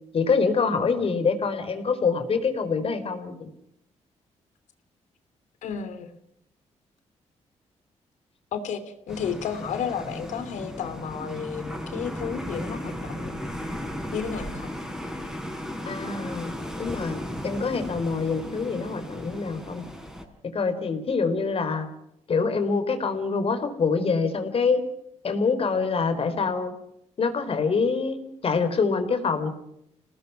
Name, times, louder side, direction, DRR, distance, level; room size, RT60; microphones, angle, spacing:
voice 1, 0.1-3.5 15.9-17.2 17.4-19.8 20.5-21.9 22.3-24.8 25.2-26.7 27.2-29.5, left 4 dB, 50° left, 9 dB, 4.3 m, -25 dB
voice 2, 5.6-6.1 8.5-13.4 14.1-14.8, left 7 dB, 90° left, 10 dB, 3.1 m, -32 dB
sound 1, 9.1-20.2, left 1 dB, 5° right, 5.7 m, -35 dB
28.0 x 19.0 x 6.2 m, 0.79 s
cardioid pair, 90°, 12 cm